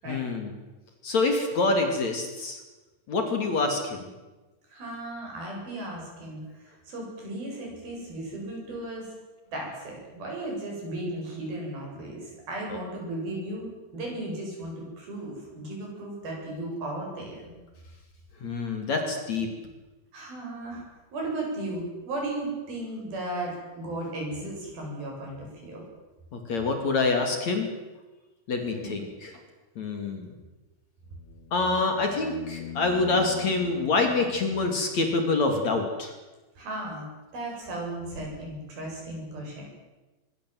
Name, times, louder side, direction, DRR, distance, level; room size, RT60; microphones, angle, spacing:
voice 1, 0.1-0.5 1.0-2.6 3.1-4.1 12.7-12.8 18.4-19.5 26.3-27.8 28.5-29.3 29.8-30.3 31.5-36.1, left 3 dB, 45° left, 4 dB, 3.6 m, -26 dB
voice 2, 4.7-9.1 9.5-17.5 20.1-20.8 21.1-25.8 28.8-28.9 36.6-37.1 37.3-39.6, right 1 dB, 65° right, -1 dB, 9.8 m, -35 dB
sound 1, 31.1-35.2 37.6-37.7, left 9 dB, 60° left, 3.3 m, -42 dB
24.0 x 22.5 x 7.8 m, 1.2 s
omnidirectional pair, 4.7 m